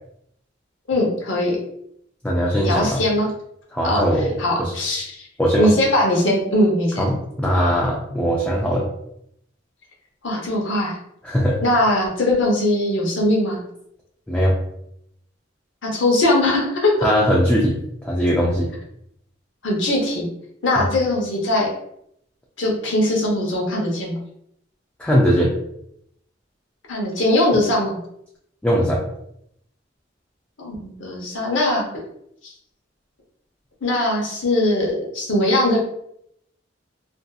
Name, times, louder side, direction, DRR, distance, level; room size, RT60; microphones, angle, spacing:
voice 1, 0.9-1.6 2.6-3.3 3.8-4.0 4.4-5.2 5.6-7.1 10.2-11.0 11.6-13.6 15.8-17.1 19.6-20.3 20.6-21.7 22.6-24.2 26.9-28.0 30.6-31.9 33.8-35.8, left 1 dB, 75° left, -2 dB, 0.8 m, -20 dB
voice 2, 2.2-3.0 3.7-4.7 5.4-5.7 7.0-8.9 11.2-11.6 14.3-14.5 17.0-18.7 25.0-25.5 28.6-29.0, equal, 5° left, -4 dB, 0.3 m, -20 dB
2.6 x 2.5 x 2.3 m, 0.75 s
head